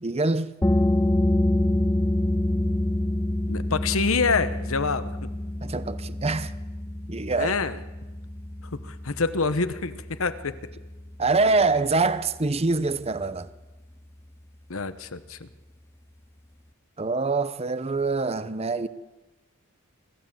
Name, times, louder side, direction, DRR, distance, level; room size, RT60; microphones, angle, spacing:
voice 1, 0.0-0.5 5.6-6.5 7.1-7.6 11.2-13.5 17.0-18.9, right 3 dB, 30° right, 0.7 m, -25 dB
sound 1, 0.6-12.0, left 1 dB, 10° left, 0.6 m, -27 dB
voice 2, 3.5-5.3 7.3-7.8 8.7-10.6 14.7-15.5, left 4 dB, 75° left, 1.1 m, -27 dB
25.0 x 14.5 x 7.5 m
head